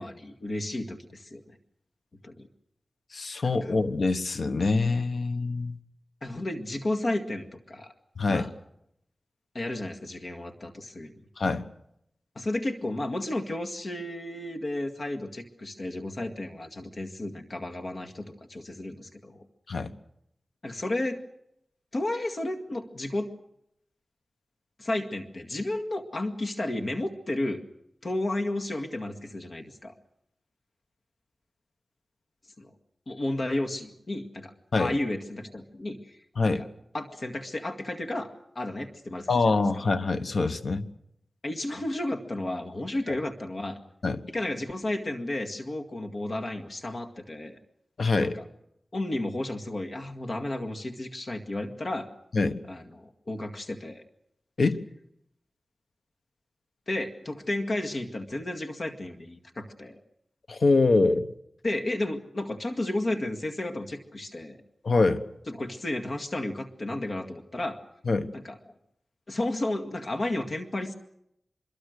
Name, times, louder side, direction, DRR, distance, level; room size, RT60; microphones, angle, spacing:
voice 1, 0.0-1.6 2.2-2.5 3.6-3.7 6.2-7.9 8.3-8.5 9.5-11.1 12.4-19.5 20.6-21.2 21.9-23.3 24.8-27.6 28.0-29.9 32.6-32.7 33.1-36.7 36.9-39.6 41.4-43.8 44.3-47.6 48.2-48.4 48.9-52.1 52.7-54.0 56.9-60.0 61.6-64.6 65.5-67.8 68.3-68.7 69.3-70.9, left 1 dB, 55° left, 4 dB, 2.0 m, -33 dB
voice 2, 3.1-5.8 8.2-8.5 11.4-11.6 19.7-19.9 34.7-34.9 36.4-36.6 39.3-40.9 44.0-44.2 48.0-48.3 52.3-52.6 54.6-54.8 60.5-61.3 64.8-65.2 68.1-68.3, left 3 dB, 75° left, 10 dB, 1.2 m, -24 dB
24.5 x 23.0 x 6.6 m, 0.77 s
wide cardioid pair, 105°, 0 cm